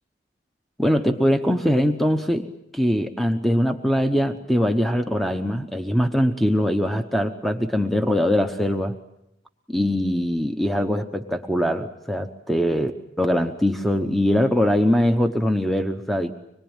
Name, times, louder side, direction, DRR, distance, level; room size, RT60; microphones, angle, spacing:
voice 1, 0.8-9.0 9.7-12.9 13.2-16.3, equal, ahead, 6 dB, 1.0 m, -22 dB
25.5 x 22.0 x 9.0 m, 0.80 s
head